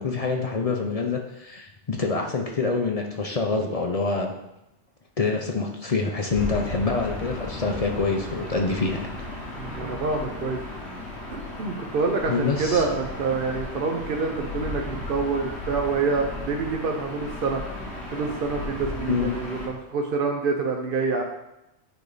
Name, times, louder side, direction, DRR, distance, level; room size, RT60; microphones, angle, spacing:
voice 1, 0.0-4.3 5.2-9.1 12.3-12.8 19.1-19.3, left 4 dB, 40° left, 2 dB, 0.6 m, -26 dB
Gull seagull / Ocean, 6.3-19.7, left 2 dB, 70° left, 1.7 m, -35 dB
sound 1, 6.5-9.2 9.5-13.7 14.0-14.1 14.5-16.7, equal, 15° right, 1.1 m, -47 dB
voice 2, 9.5-10.6 11.3-17.6 18.1-21.2, right 4 dB, 55° right, 2 dB, 0.8 m, -27 dB
9.2 x 3.4 x 4.0 m, 0.88 s
omnidirectional pair, 1.2 m